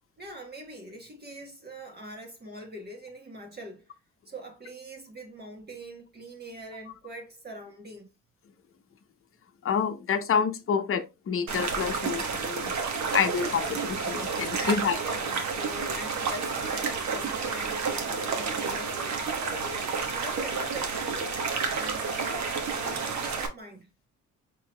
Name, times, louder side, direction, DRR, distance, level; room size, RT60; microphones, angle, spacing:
voice 1, 0.2-3.9 4.3-8.1 14.5-21.2 21.6-23.9, right 1 dB, 35° right, 1.3 m, -43 dB
voice 2, 9.6-12.7 13.1-15.0, left 6 dB, 45° left, 0.8 m, -28 dB
sound 1, 11.5-23.5, right 5 dB, 65° right, 1.2 m, -30 dB
4.6 x 4.5 x 2.2 m
cardioid pair, 90°, 30 cm